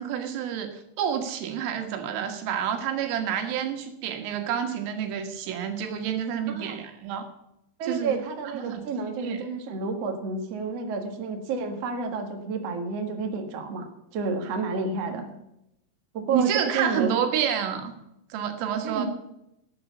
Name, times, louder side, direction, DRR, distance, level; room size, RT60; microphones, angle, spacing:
voice 1, 0.0-7.3 7.8-8.2 8.5-8.9 9.2-9.5 15.1-15.3 16.3-17.9 18.3-19.1, right 9 dB, 85° right, 6 dB, 4.0 m, -29 dB
voice 2, 7.8-13.9 14.1-15.3 16.1-17.1 18.8-19.1, right 4 dB, 65° right, 4 dB, 1.5 m, -30 dB
12.0 x 7.8 x 8.3 m, 0.82 s
omnidirectional pair, 5.8 m